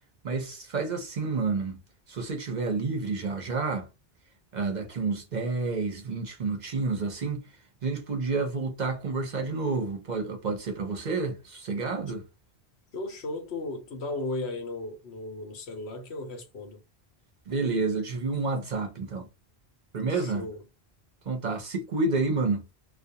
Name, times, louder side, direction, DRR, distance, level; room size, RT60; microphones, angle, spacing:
voice 1, 0.2-1.8 2.1-3.9 4.5-7.5 7.8-12.2 17.5-19.3 19.9-20.5 21.3-22.6, right 3 dB, 50° right, 0.7 m, -29 dB
voice 2, 12.9-16.8 20.1-20.6, left 2 dB, 80° left, 1.1 m, -36 dB
2.4 x 2.2 x 2.7 m
omnidirectional pair, 1.1 m